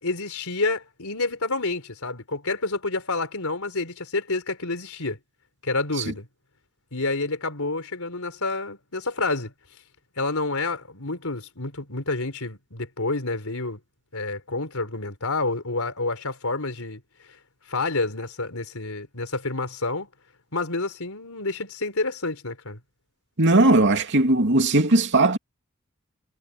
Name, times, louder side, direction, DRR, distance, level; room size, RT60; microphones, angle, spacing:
voice 1, 0.0-5.2 5.6-6.3 6.9-9.5 10.2-13.8 14.1-17.0 17.7-20.1 20.5-22.8, left 3 dB, 75° left, 4.4 m, -28 dB
voice 2, 23.4-25.4, right 2 dB, 55° right, 2.6 m, -18 dB
head